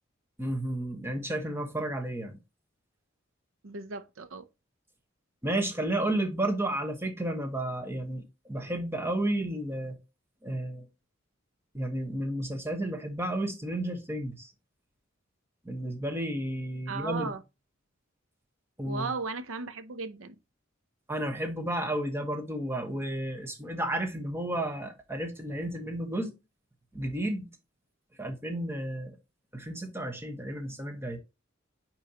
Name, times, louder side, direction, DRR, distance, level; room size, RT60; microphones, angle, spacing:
voice 1, 0.4-2.4 5.4-10.0 10.4-10.9 11.7-14.5 15.6-17.3 18.8-19.1 21.1-26.3 26.9-27.5 28.2-29.2 29.5-31.2, right 1 dB, 10° right, 1.3 m, -32 dB
voice 2, 3.6-4.4 16.9-17.4 18.9-20.4, right 4 dB, 75° right, 0.7 m, -36 dB
9.2 x 4.5 x 2.9 m
head